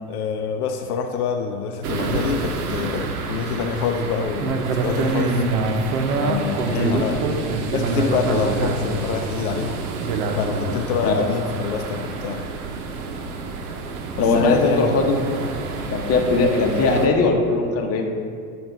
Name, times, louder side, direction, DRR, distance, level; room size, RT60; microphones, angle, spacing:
voice 1, 0.1-5.4 6.2-6.6 6.9-9.8 10.3-12.4 14.2-15.1 15.8-15.9, left 6 dB, 80° left, 5 dB, 0.5 m, -26 dB
sound 1, 1.8-17.1, right 3 dB, 75° right, 0.8 m, -26 dB
voice 2, 14.2-15.1 15.9-18.0, left 3 dB, 35° left, 2 dB, 0.9 m, -19 dB
7.7 x 2.6 x 5.1 m, 2.2 s
hypercardioid pair, 85°, 44 cm